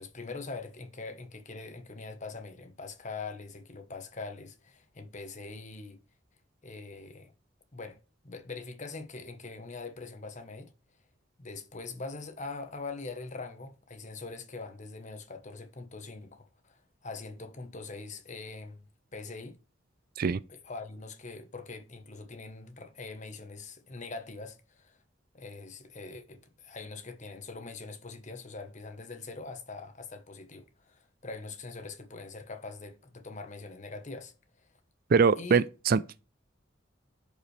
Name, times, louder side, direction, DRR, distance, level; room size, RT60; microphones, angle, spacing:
voice 1, 0.0-6.0 6.6-7.3 7.7-10.7 11.4-18.9 19.1-19.6 20.5-25.0 25.3-34.3 35.3-35.6, left 3 dB, 40° left, 1.2 m, -43 dB
voice 2, 35.1-36.2, right 5 dB, 50° right, 0.4 m, -23 dB
11.0 x 5.3 x 3.3 m
head